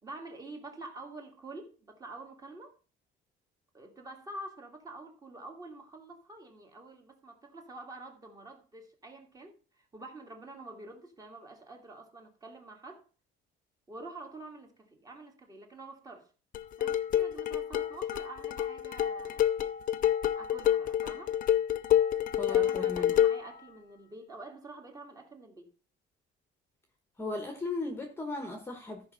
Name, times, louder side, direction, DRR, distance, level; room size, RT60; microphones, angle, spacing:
voice 1, 0.0-2.7 3.7-13.0 13.9-16.3 16.8-19.8 20.4-21.3 22.5-25.7, right 2 dB, 20° right, 2.1 m, -47 dB
sound 1, 16.5-23.5, left 11 dB, 45° left, 0.6 m, -28 dB
voice 2, 22.4-23.2 27.2-29.1, left 3 dB, 10° left, 1.3 m, -37 dB
13.5 x 5.3 x 5.6 m
cardioid pair, 165°, 20 cm